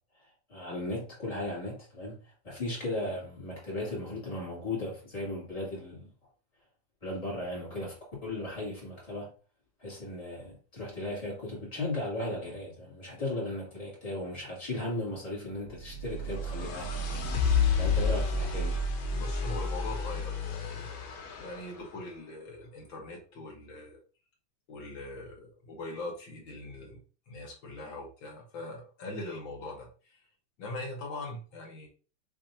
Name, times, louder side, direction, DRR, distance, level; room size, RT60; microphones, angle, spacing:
voice 1, 0.5-2.2 2.4-6.1 7.0-9.3 9.8-16.9 17.8-18.8, left 1 dB, 15° left, 1.8 m, -36 dB
sound 1, 15.7-21.8, left 4 dB, 80° left, 2.4 m, -30 dB
voice 2, 19.1-20.9 21.4-24.0 24.7-27.0 27.3-30.2 30.6-31.9, left 2 dB, 55° left, 1.4 m, -41 dB
6.0 x 3.3 x 2.7 m
omnidirectional pair, 3.7 m